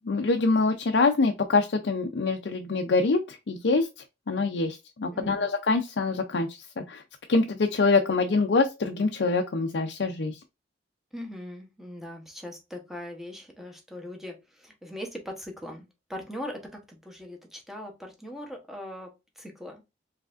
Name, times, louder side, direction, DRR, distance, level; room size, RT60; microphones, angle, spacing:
voice 1, 0.1-3.9 4.3-6.5 6.8-7.0 7.3-10.4, left 3 dB, 65° left, 0.5 m, -25 dB
voice 2, 5.1-5.5 11.1-19.8, left 1 dB, ahead, 1.0 m, -40 dB
4.7 x 3.4 x 2.5 m
head